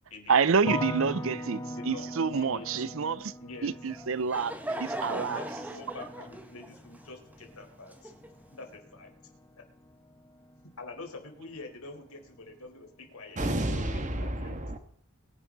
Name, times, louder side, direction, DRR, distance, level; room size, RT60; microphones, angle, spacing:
voice 1, 0.3-3.3 3.6-5.6, right 5 dB, 60° right, 0.6 m, -28 dB
sound 1, 0.6-11.7 12.0-12.7, left 1 dB, 15° left, 0.7 m, -42 dB
voice 2, 1.7-2.7 3.4-3.7 5.2-8.1 8.5-9.1 10.6-13.4 13.7-13.8 14.2-14.6, left 3 dB, 75° left, 4.3 m, -46 dB
Laughter / Crowd, 3.9-8.6, right 1 dB, 5° right, 1.2 m, -39 dB
voice 3, 13.4-14.8, right 1 dB, 35° right, 2.0 m, -30 dB
23.0 x 10.5 x 4.0 m
head